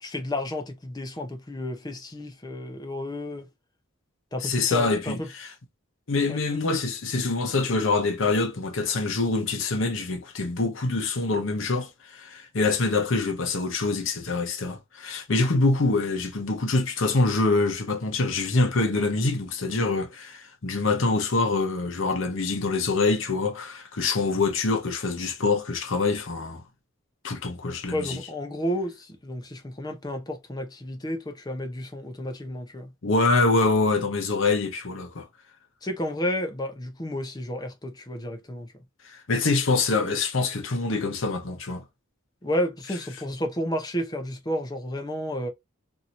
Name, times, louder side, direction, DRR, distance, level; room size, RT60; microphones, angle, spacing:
voice 1, 0.0-3.5 4.3-5.3 6.3-6.4 27.9-32.9 35.8-38.7 42.4-45.5, left 1 dB, 20° left, 0.6 m, -31 dB
voice 2, 4.4-5.5 6.1-26.7 27.2-28.2 33.0-35.3 39.0-41.8, left 3 dB, 65° left, 0.8 m, -25 dB
2.9 x 2.7 x 2.5 m
head